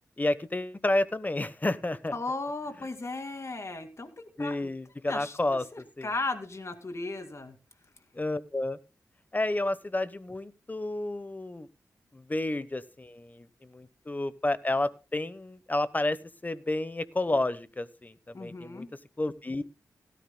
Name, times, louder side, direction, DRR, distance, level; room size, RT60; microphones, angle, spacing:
voice 1, 0.2-2.1 4.4-6.1 8.1-8.8 9.3-11.7 12.1-19.6, left 2 dB, 25° left, 15 dB, 1.0 m, -31 dB
voice 2, 2.1-4.7 5.1-5.4 5.7-7.5 18.3-18.9, left 3 dB, 45° left, 7 dB, 2.3 m, -36 dB
17.0 x 13.0 x 2.2 m, 0.32 s
cardioid pair, 50°, 7 cm